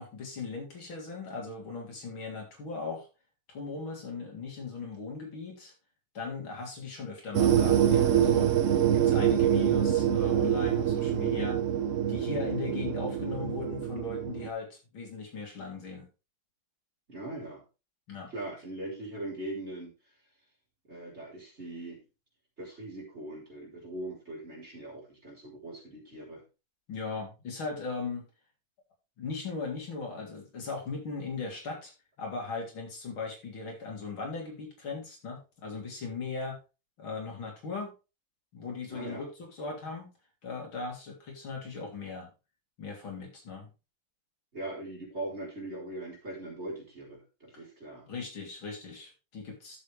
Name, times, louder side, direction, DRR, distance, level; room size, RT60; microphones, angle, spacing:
voice 1, 0.0-3.1 3.5-5.7 6.1-8.6 8.9-11.6 12.1-16.1 18.1-18.3 26.9-28.3 29.2-31.9 32.2-36.6 37.0-37.9 38.5-40.1 40.4-42.3 42.8-43.7 48.1-49.8, left 4 dB, 85° left, 0 dB, 4.0 m, -38 dB
sound 1, 7.3-14.5, right 9 dB, 55° right, 0.9 m, -25 dB
voice 2, 17.1-17.6 18.3-19.9 20.9-22.0 22.6-26.4 38.9-39.2 44.5-48.0, right 1 dB, 30° right, -2 dB, 4.1 m, -40 dB
11.5 x 7.1 x 3.4 m, 0.29 s
omnidirectional pair, 2.2 m